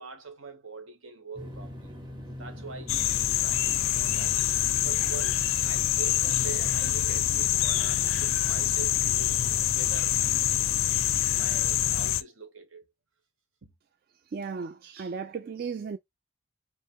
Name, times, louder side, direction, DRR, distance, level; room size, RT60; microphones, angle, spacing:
voice 1, 0.0-2.0 2.4-4.4 4.8-9.4 9.7-10.2 11.3-12.9 13.6-13.7, right 4 dB, 80° right, 1.1 m, -43 dB
sound 1, 1.4-12.1, left 1 dB, 25° right, 1.0 m, -42 dB
sound 2, 2.9-12.2, left 12 dB, 90° left, 0.4 m, -26 dB
voice 2, 14.3-16.0, right 5 dB, 45° right, 0.3 m, -35 dB
5.3 x 2.0 x 3.6 m
head